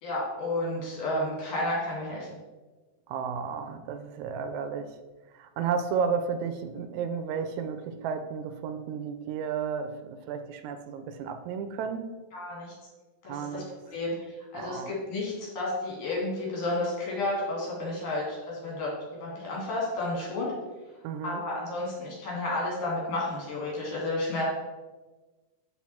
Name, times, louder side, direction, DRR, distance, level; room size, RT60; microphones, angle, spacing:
voice 1, 0.0-2.3 12.3-12.7 13.2-13.6 13.9-20.5 21.2-24.5, left 2 dB, 80° left, -4 dB, 4.3 m, -31 dB
voice 2, 3.1-5.0 5.3-12.1 13.3-13.7 14.5-14.9 21.0-21.4, right 6 dB, 80° right, 9 dB, 1.9 m, -33 dB
11.5 x 3.9 x 4.4 m, 1.2 s
omnidirectional pair, 3.5 m